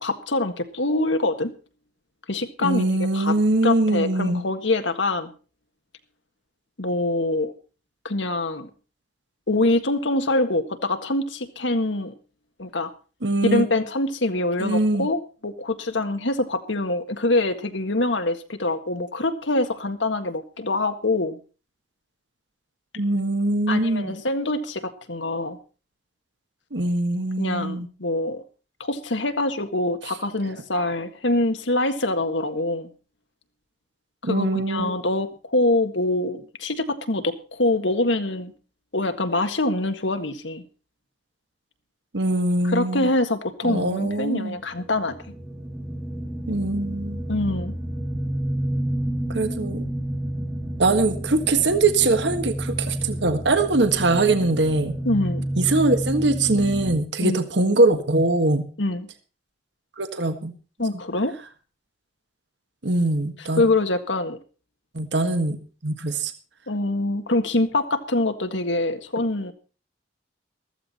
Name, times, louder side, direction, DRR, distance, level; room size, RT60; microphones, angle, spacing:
voice 1, 0.0-1.5 2.3-3.4 3.6-5.3 6.8-7.5 8.0-8.7 9.5-12.1 12.6-12.9 13.4-21.4 23.7-25.6 27.4-28.4 28.8-32.9 34.2-38.5 38.9-40.6 42.6-45.2 47.3-47.7 55.0-55.5 57.2-57.4 58.8-59.1 60.8-61.3 63.4-64.4 66.7-69.5, left 2 dB, 80° left, 8 dB, 1.7 m, -24 dB
voice 2, 2.6-4.4 13.2-13.7 14.6-15.1 23.0-24.1 26.7-27.9 34.2-34.9 42.1-43.1 43.6-44.6 46.5-47.2 49.3-49.9 50.8-55.0 55.6-58.7 60.0-60.5 62.8-63.6 64.9-65.6 65.8-66.3, right 2 dB, 70° right, 9 dB, 1.6 m, -22 dB
sound 1, 44.7-57.0, right 1 dB, 10° right, 1.4 m, -30 dB
14.5 x 14.5 x 4.3 m, 0.35 s
head